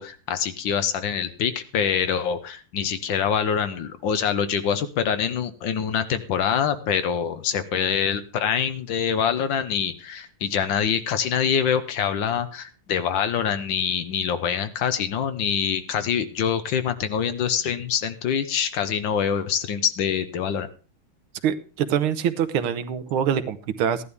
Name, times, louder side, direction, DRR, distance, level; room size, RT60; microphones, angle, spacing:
voice 1, 0.0-20.7, left 8 dB, 70° left, 10 dB, 1.5 m, -25 dB
voice 2, 21.4-24.0, right 8 dB, 90° right, 12 dB, 1.7 m, -24 dB
15.0 x 11.0 x 3.5 m, 0.35 s
omnidirectional pair, 2.3 m